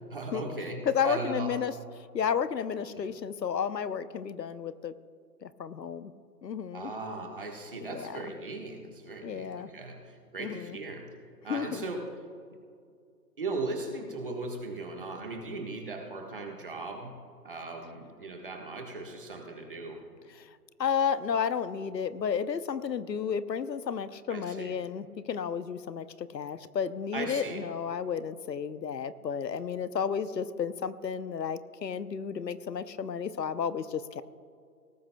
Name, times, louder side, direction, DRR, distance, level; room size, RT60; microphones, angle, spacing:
voice 1, 0.1-1.5 2.9-3.1 6.7-11.0 11.4-12.0 13.4-17.2 17.4-20.0 24.3-24.7 27.1-27.6, right 3 dB, 35° right, 2 dB, 1.4 m, -38 dB
voice 2, 0.9-4.9 5.4-6.1 6.4-6.9 7.9-8.2 9.2-9.7 10.4-10.8 11.5-11.9 20.4-34.2, left 7 dB, 90° left, 14 dB, 0.8 m, -32 dB
18.5 x 15.0 x 2.3 m, 2.3 s
hypercardioid pair, 175°, 48 cm